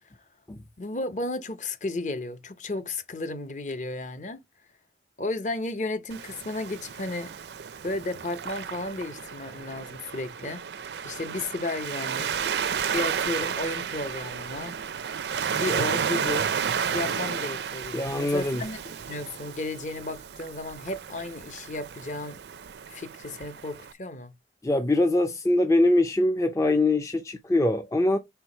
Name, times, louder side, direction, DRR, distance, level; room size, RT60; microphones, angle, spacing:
voice 1, 0.8-4.4 5.2-7.3 7.8-12.4 12.9-14.8 15.5-16.5 16.9-22.4 22.9-24.3, left 2 dB, 45° left, 0.7 m, -33 dB
Waves surf, 6.1-23.9, right 7 dB, 75° right, 0.4 m, -32 dB
voice 2, 17.9-18.6 24.6-28.2, left 2 dB, 15° left, 0.4 m, -23 dB
4.6 x 3.9 x 5.4 m
head